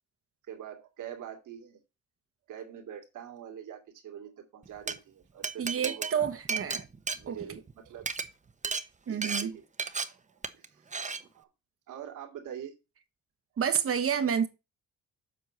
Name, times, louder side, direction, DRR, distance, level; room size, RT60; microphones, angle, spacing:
voice 1, 0.5-1.8 2.5-6.4 7.1-8.0 9.1-9.6 10.0-11.5 11.9-12.7, right 9 dB, 80° right, 2.4 m, -44 dB
Glass, 4.7-4.9 5.4-7.7 8.0-8.2 8.6-8.8 9.2-9.4 9.8-10.0 10.4-10.7 10.9-11.2, right 4 dB, 25° right, 1.0 m, -33 dB
voice 2, 5.6-6.8 7.3-7.4 9.1-9.5 13.6-14.5, right 7 dB, 50° right, 1.3 m, -29 dB
7.7 x 4.6 x 7.1 m
cardioid pair, 90°, 30 cm